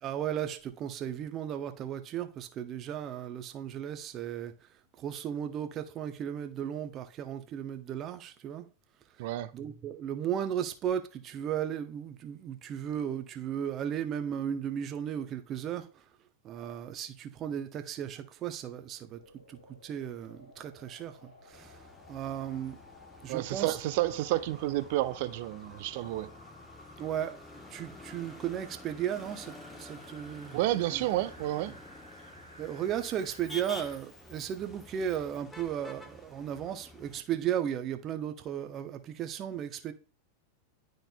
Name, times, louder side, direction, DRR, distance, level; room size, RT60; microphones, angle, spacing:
voice 1, 0.0-4.5 5.0-8.7 9.5-15.9 16.4-19.2 19.5-21.8 22.1-22.8 23.2-23.8 27.0-27.4 27.7-31.0 32.6-39.9, right 9 dB, 30° right, 0.8 m, -35 dB
voice 2, 9.2-9.5 23.3-26.3 30.5-31.7, right 16 dB, 50° right, 0.4 m, -30 dB
sound 1, 19.0-34.0 34.5-34.6, left 1 dB, 80° left, 1.8 m, -54 dB
Motor vehicle (road), 21.5-37.2, left 2 dB, 10° left, 0.9 m, -50 dB
11.5 x 3.9 x 2.3 m
figure-of-eight pair, 90°, 0 cm